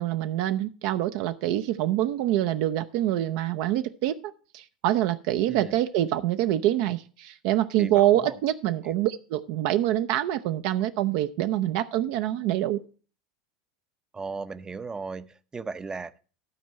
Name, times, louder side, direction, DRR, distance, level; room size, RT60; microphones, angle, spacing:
voice 1, 0.0-4.2 4.5-12.8, right 13 dB, 60° right, 0.6 m, -25 dB
voice 2, 7.8-8.4 8.8-9.1 14.1-16.2, right 4 dB, 15° right, 0.6 m, -37 dB
12.5 x 4.5 x 6.4 m
hypercardioid pair, 95°, 4 cm